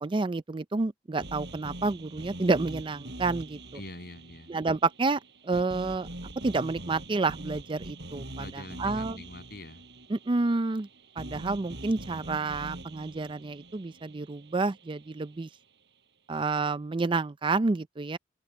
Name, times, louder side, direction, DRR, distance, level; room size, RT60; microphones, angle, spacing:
voice 1, 0.0-3.6 4.5-6.1 6.4-9.2 10.1-10.9 11.2-15.5 16.3-18.2, right 3 dB, 30° right, 0.4 m, -29 dB
sound 1, 1.2-15.4, right 1 dB, 65° right, 7.5 m, -44 dB
voice 2, 3.7-4.5 8.4-9.8 16.3-16.4, left 1 dB, 55° left, 7.6 m, -44 dB
open air
head